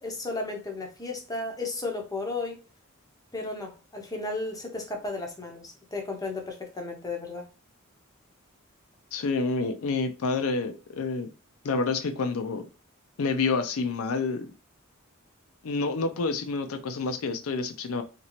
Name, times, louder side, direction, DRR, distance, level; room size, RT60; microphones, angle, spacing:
voice 1, 0.0-2.6 3.3-7.5, left 3 dB, 15° left, 0.7 m, -34 dB
voice 2, 9.1-11.3 11.6-12.7 13.2-14.5 15.6-18.0, left 4 dB, 80° left, 0.5 m, -28 dB
2.9 x 2.8 x 2.9 m
head